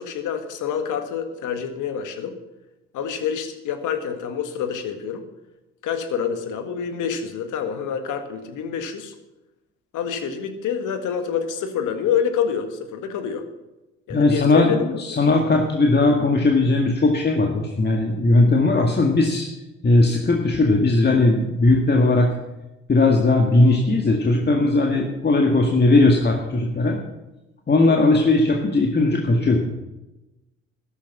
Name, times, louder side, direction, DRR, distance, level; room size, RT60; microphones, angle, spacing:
voice 1, 0.0-2.4 2.9-5.2 5.8-9.1 9.9-13.5 14.1-14.8 27.8-28.1, left 7 dB, 60° left, 8 dB, 1.9 m, -27 dB
voice 2, 14.1-19.5 19.8-22.3 22.9-27.0 27.7-29.6, left 2 dB, 30° left, 1 dB, 1.9 m, -18 dB
13.0 x 11.5 x 6.1 m, 1.0 s
hypercardioid pair, 60°, 35 cm